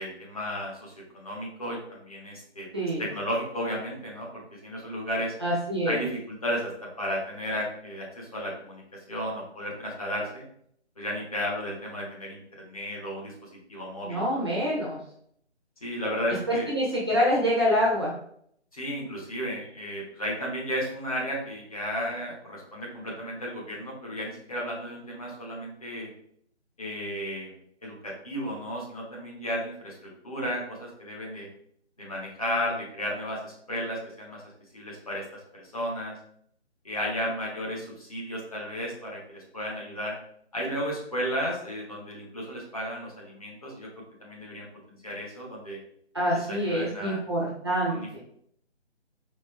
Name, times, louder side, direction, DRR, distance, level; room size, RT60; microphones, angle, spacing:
voice 1, 0.0-2.7 3.0-5.3 5.8-10.4 11.0-14.4 15.8-16.7 18.7-26.1 26.8-27.5 27.8-31.5 32.0-34.4 34.7-36.2 36.8-40.1 40.5-43.9 44.2-44.7 45.0-45.8 46.5-47.2 47.9-48.2, equal, 30° left, -3 dB, 1.0 m, -34 dB
voice 2, 5.4-6.0 14.0-15.0 16.5-18.1 46.1-48.2, equal, 25° right, -5 dB, 0.7 m, -26 dB
4.3 x 2.8 x 3.5 m, 0.66 s
figure-of-eight pair, 160°, 35 cm